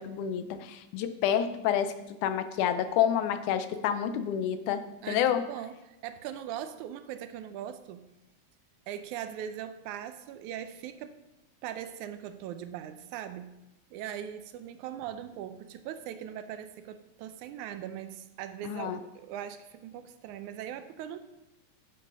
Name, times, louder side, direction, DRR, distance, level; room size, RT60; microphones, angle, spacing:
voice 1, 0.0-1.9 2.2-4.8 5.1-5.4 18.6-19.0, left 9 dB, 85° left, 10 dB, 2.2 m, -28 dB
voice 2, 5.0-8.1 8.9-11.2 11.6-13.5 13.9-21.2, right 10 dB, 80° right, 10 dB, 2.0 m, -40 dB
10.5 x 5.3 x 5.5 m, 0.97 s
omnidirectional pair, 3.5 m